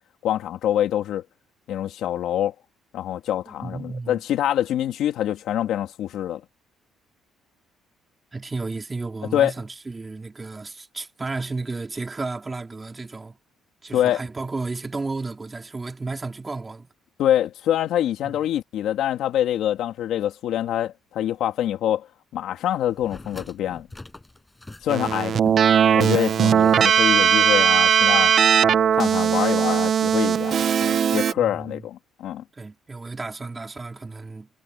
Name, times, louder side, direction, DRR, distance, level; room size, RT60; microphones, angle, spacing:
voice 1, 0.2-1.2 1.7-2.5 2.9-6.4 9.3-9.5 13.9-14.2 17.2-22.1 22.3-23.9 24.8-25.4 25.9-28.3 28.9-32.4, left 11 dB, 75° left, 2.2 m, -25 dB
voice 2, 3.5-4.2 8.3-13.4 13.8-16.9 18.2-18.4 31.3-31.9 32.5-34.5, right 3 dB, 20° right, 3.8 m, -33 dB
sound 1, 22.8-25.9 26.5-27.6 27.8-27.9, left 2 dB, 10° left, 6.7 m, -43 dB
Keyboard (musical), 24.9-31.3, right 8 dB, 50° right, 0.8 m, -19 dB
cardioid pair, 120°, 0 cm